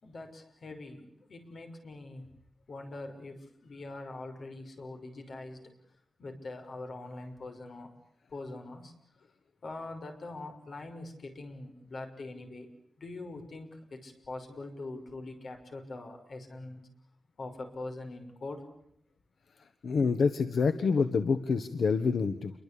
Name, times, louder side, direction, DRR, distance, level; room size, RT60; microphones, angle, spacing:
voice 1, 0.0-2.3 2.7-5.7 6.2-7.9 8.3-8.9 9.6-12.7 13.0-16.8 17.4-18.6, left 2 dB, 55° left, 5 dB, 6.1 m, -43 dB
voice 2, 19.8-22.5, left 5 dB, 75° left, 9 dB, 1.5 m, -27 dB
29.0 x 24.0 x 8.7 m, 0.72 s
wide cardioid pair, 160°, 0 cm